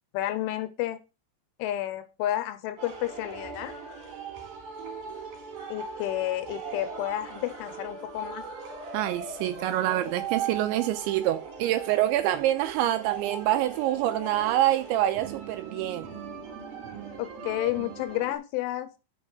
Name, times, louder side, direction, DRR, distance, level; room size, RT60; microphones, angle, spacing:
voice 1, 0.1-1.0 1.6-3.7 5.7-8.4 17.2-18.9, left 14 dB, 85° left, 3.1 m, -31 dB
sound 1, 2.8-18.4, right 6 dB, 50° right, 3.1 m, -39 dB
voice 2, 8.9-16.1, right 13 dB, 80° right, 2.8 m, -26 dB
6.4 x 5.9 x 6.2 m
omnidirectional pair, 5.7 m